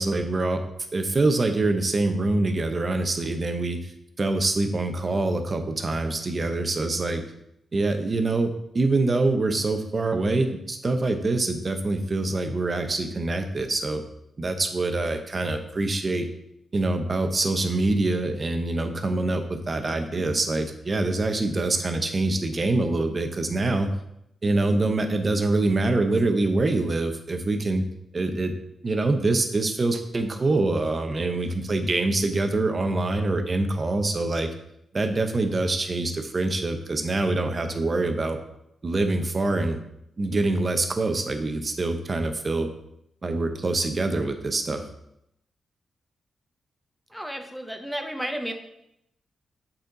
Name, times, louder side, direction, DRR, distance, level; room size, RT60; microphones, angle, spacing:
voice 1, 0.0-3.9 4.2-7.2 7.7-14.0 14.4-16.3 16.7-23.9 24.4-27.8 28.1-28.5 28.8-34.5 34.9-38.4 38.8-39.8 40.2-42.7 43.2-44.9, right 2 dB, 35° right, 6 dB, 0.8 m, -25 dB
voice 2, 47.1-48.5, equal, ahead, 5 dB, 0.8 m, -32 dB
8.1 x 4.2 x 3.9 m, 0.79 s
wide cardioid pair, 115°, 0 cm